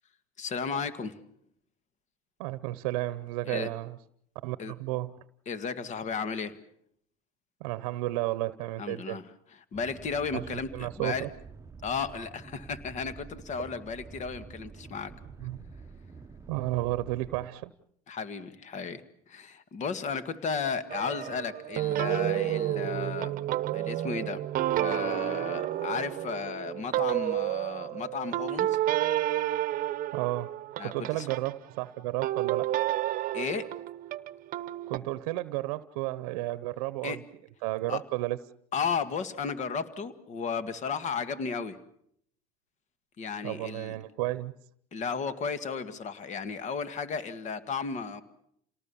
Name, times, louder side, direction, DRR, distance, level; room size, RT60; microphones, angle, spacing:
voice 1, 0.4-1.2 3.5-3.7 4.6-4.7 5.5-6.6 8.8-9.2 9.5-11.3 11.8-15.1 18.1-23.4 23.7-24.4 24.8-28.8 30.8-31.3 33.3-33.7 37.0-37.2 37.9-38.0 38.7-41.8 43.2-44.0 44.9-48.2, left 5 dB, 40° left, 12 dB, 1.9 m, -34 dB
voice 2, 2.4-4.0 4.4-5.1 7.6-9.2 10.3-10.4 10.7-11.3 15.4-15.6 16.5-17.7 30.1-30.5 30.8-32.7 34.9-37.2 37.6-38.4 43.4-44.5, right 17 dB, 80° right, 16 dB, 0.9 m, -32 dB
sound 1, 9.7-17.5, right 4 dB, 15° right, 1.0 m, -48 dB
sound 2, 20.9-31.5 32.2-35.0, right 13 dB, 50° right, 1.0 m, -30 dB
28.5 x 18.5 x 7.1 m, 0.70 s
supercardioid pair, 105°, 19 cm